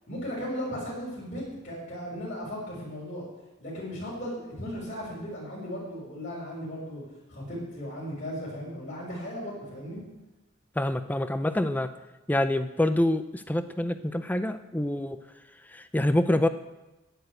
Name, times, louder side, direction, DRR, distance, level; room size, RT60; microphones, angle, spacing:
voice 1, 0.1-3.2 3.6-7.0 7.3-10.0, equal, 40° left, -8 dB, 5.2 m, -36 dB
voice 2, 10.8-11.9 12.3-15.2 15.7-16.5, left 1 dB, 10° left, 10 dB, 0.5 m, -26 dB
11.0 x 9.9 x 8.0 m, 1.0 s
head